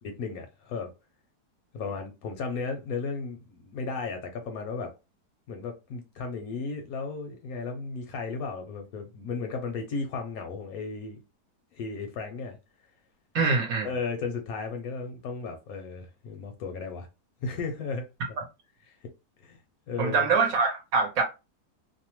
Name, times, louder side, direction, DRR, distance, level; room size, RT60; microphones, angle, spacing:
voice 1, 0.2-0.9 1.7-4.9 5.5-11.2 11.7-12.6 13.8-17.1 17.4-18.1 19.4-19.6 19.9-20.3, left 4 dB, 70° left, 0.9 m, -34 dB
voice 2, 13.3-13.9 20.0-21.2, right 4 dB, 65° right, 1.0 m, -24 dB
2.7 x 2.1 x 2.9 m
omnidirectional pair, 1.8 m